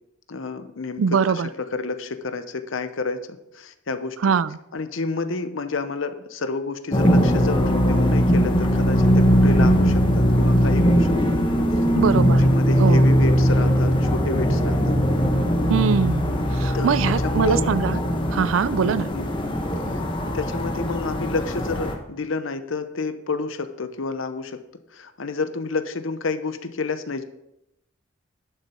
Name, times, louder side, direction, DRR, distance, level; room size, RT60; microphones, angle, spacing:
voice 1, 0.3-4.3 4.7-11.4 12.4-15.0 16.7-17.6 19.0-19.3 19.9-24.6 24.9-27.2, left 4 dB, 90° left, 10 dB, 0.8 m, -30 dB
voice 2, 1.0-1.5 4.2-4.6 11.9-12.4 12.8-13.1 15.7-18.0 18.3-19.1, right 6 dB, 85° right, 17 dB, 0.4 m, -22 dB
sound 1, 6.9-21.9, equal, 25° left, 1.1 m, -20 dB
11.0 x 6.8 x 4.4 m, 0.86 s
head